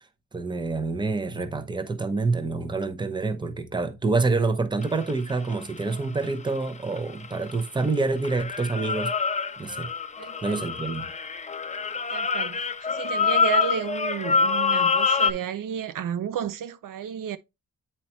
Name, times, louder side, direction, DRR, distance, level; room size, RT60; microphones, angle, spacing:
voice 1, 0.3-9.1 9.6-9.9 10.4-11.1, right 3 dB, 15° right, 0.7 m, -27 dB
sound 1, 4.8-7.9 8.2-15.3, left 5 dB, 20° left, 0.4 m, -26 dB
voice 2, 10.2-10.7 12.1-17.4, right 9 dB, 75° right, 0.5 m, -32 dB
8.5 x 4.3 x 3.0 m
wide cardioid pair, 165°, 33 cm